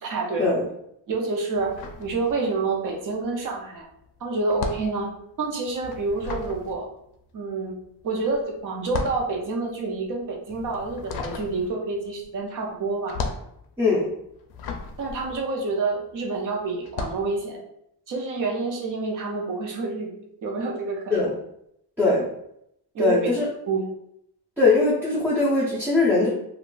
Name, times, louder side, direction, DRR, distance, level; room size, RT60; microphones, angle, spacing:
voice 1, 0.0-0.5 1.1-1.7 2.0-3.9 4.2-5.1 5.4-6.9 7.3-7.8 8.0-13.2 15.0-17.6 18.1-20.1 20.4-21.1 22.0-22.2 22.9-23.3 23.7-23.9, right 3 dB, 50° right, 0 dB, 0.7 m, -28 dB
sound 1, 1.6-2.8 3.1-16.2 16.8-17.3, left 4 dB, 70° left, 0.5 m, -36 dB
voice 2, 23.0-23.4 24.6-26.3, left 3 dB, 5° right, -7 dB, 0.5 m, -21 dB
2.4 x 2.3 x 3.7 m, 0.77 s
wide cardioid pair, 175°, 40 cm